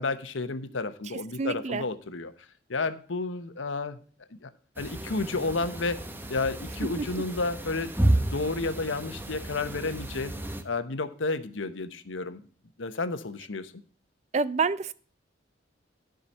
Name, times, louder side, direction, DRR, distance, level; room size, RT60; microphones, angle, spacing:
voice 1, 0.0-2.3 2.7-4.0 4.4-4.5 4.8-6.0 6.3-10.4 10.6-12.4 12.8-13.7, left 3 dB, 85° left, 1.0 m, -31 dB
voice 2, 1.1-1.9 7.0-7.1 14.3-14.9, right 4 dB, 35° right, 0.4 m, -28 dB
sound 1, 4.8-10.6, right 1 dB, 10° right, 0.8 m, -31 dB
12.0 x 5.0 x 5.4 m
head